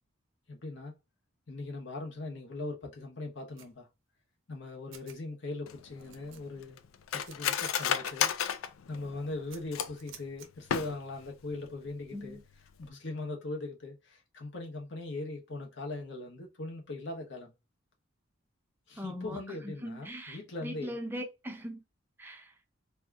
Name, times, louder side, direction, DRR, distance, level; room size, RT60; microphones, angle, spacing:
voice 1, 0.5-0.9 1.5-3.9 4.5-6.8 7.1-8.3 8.9-12.4 12.8-17.5 18.9-21.0, left 2 dB, 60° left, 0.9 m, -40 dB
sound 1, 3.6-3.7 4.6-4.7 4.9-5.2 5.6-5.7 6.0-6.7 7.2-8.3 8.7-8.8 9.5-10.5, right 8 dB, 75° right, 0.6 m, -51 dB
Cutlery silverware, 5.7-10.1 10.6-11.3 11.6-11.7 12.0-12.4 12.7-12.9, left 8 dB, 90° left, 0.4 m, -33 dB
voice 2, 19.0-19.4 19.6-21.8 22.2-22.5, equal, 10° right, 0.4 m, -40 dB
2.8 x 2.3 x 3.5 m
head